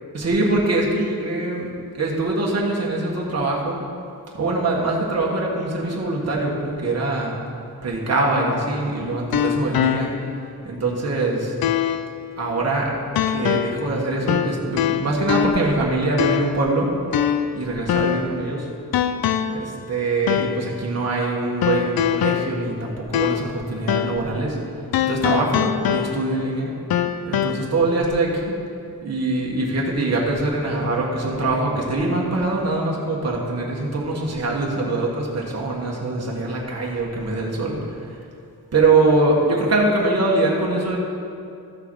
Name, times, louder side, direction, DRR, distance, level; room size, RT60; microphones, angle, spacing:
voice 1, 0.1-3.8 4.3-7.4 7.8-10.4 10.6-11.5 12.4-12.9 13.3-16.9 17.5-18.7 19.5-24.6 25.1-26.7 27.2-28.6 29.0-38.2 38.7-41.0, right 2 dB, 45° right, -3 dB, 1.6 m, -23 dB
sound 1, 8.4-10.4 10.8-10.9 11.6-12.1 13.2-13.9 14.3-15.8 16.2-16.7 17.1-18.4 18.9-19.7 20.3-20.7 21.6-23.6 23.9-24.3 24.9-26.4 26.9-27.6, left 9 dB, 75° left, 0.5 m, -23 dB
13.5 x 6.8 x 4.8 m, 2.4 s
wide cardioid pair, 140°, 37 cm